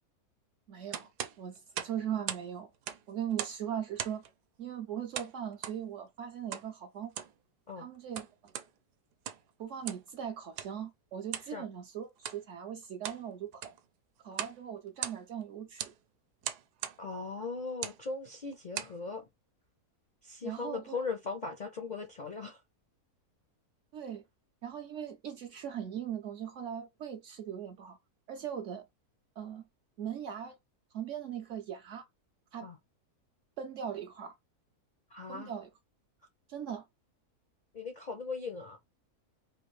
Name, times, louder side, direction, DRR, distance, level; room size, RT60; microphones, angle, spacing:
voice 1, 0.7-1.1 1.4-2.7 3.1-4.2 4.6-7.2 7.8-8.3 9.6-13.7 14.2-15.8 20.4-21.0 23.9-24.2 24.6-28.0 28.3-28.8 29.4-29.6 30.0-30.6 30.9-32.0 32.5-32.7 33.6-34.3 35.3-35.7 36.5-36.8, right 9 dB, 65° right, 0.8 m, -39 dB
sound 1, 0.9-2.5 2.7-3.6 4.0-4.3 5.1-5.8 6.5-6.7 7.0-7.4 7.9-8.7 9.1-9.5 9.8-10.1 10.6-10.7 11.3-11.5 12.2-12.4 12.8-13.2 13.5-13.8 14.3-14.6 14.9-15.4 15.8-16.0 16.4-17.0 17.7-18.0 18.5-19.0, right 10 dB, 85° right, 1.1 m, -39 dB
voice 2, 17.0-19.3 20.2-22.6 32.6-32.8 35.1-35.5 37.7-38.8, left 4 dB, 60° left, 0.4 m, -39 dB
3.3 x 2.5 x 3.1 m
omnidirectional pair, 1.6 m